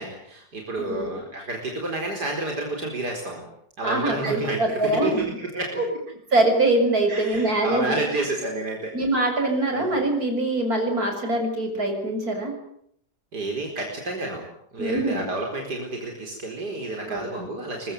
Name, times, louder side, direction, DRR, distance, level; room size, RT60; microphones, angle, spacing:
voice 1, 0.0-3.5 3.8-6.0 7.1-8.9 9.7-10.0 13.3-14.5 14.7-17.9, right 2 dB, 80° right, 1 dB, 5.0 m, -30 dB
voice 2, 0.8-1.2 3.8-5.4 5.8-5.9 6.3-8.1 8.9-12.5 14.8-15.3 17.1-17.5, right 2 dB, 65° right, 4 dB, 6.9 m, -24 dB
24.5 x 22.0 x 9.4 m, 0.70 s
omnidirectional pair, 1.7 m